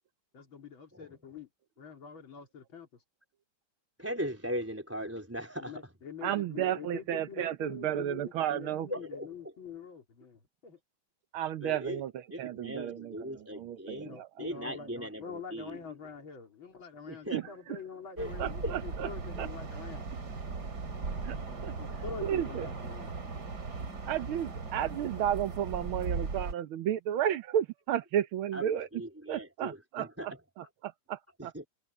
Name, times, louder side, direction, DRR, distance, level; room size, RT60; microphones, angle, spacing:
voice 1, 0.3-1.5 1.8-3.0 5.6-8.2 8.5-10.8 14.0-20.1 21.8-23.2, left 6 dB, 65° left, 4.2 m, -45 dB
voice 2, 4.0-5.8 8.9-9.3 11.6-12.0 12.3-15.8 17.1-17.4 18.2-18.3 18.6-18.8 28.5-30.4 31.4-31.7, equal, 5° right, 3.7 m, -39 dB
voice 3, 6.2-8.9 11.3-14.3 17.3-17.8 18.4-19.1 19.4-19.5 21.2-21.4 21.6-21.7 22.2-22.7 24.1-28.9 29.3-31.5, right 10 dB, 75° right, 1.7 m, -33 dB
sound 1, 18.2-26.5, right 4 dB, 50° right, 3.0 m, -38 dB
omnidirectional pair, 2.4 m